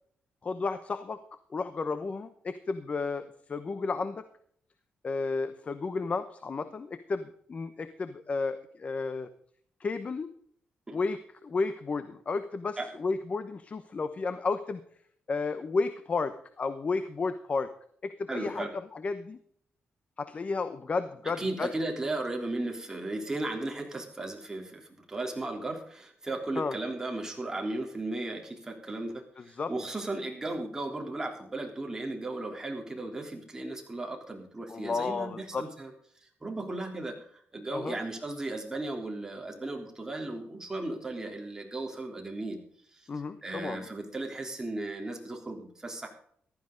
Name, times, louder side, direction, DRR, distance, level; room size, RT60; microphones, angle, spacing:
voice 1, 0.4-1.2 1.5-4.2 5.0-9.3 9.8-10.3 10.9-14.8 15.3-17.7 18.0-18.7 18.9-19.4 20.2-21.7 26.6-26.7 29.4-29.7 34.7-35.6 37.7-38.0 43.1-43.9, left 4 dB, 35° left, 11 dB, 0.9 m, -32 dB
voice 2, 18.3-18.7 21.2-35.9 36.2-42.6 42.9-43.1 43.4-46.1, right 2 dB, 15° right, 1 dB, 3.4 m, -36 dB
15.0 x 13.0 x 3.9 m, 0.63 s
cardioid pair, 110°, 4 cm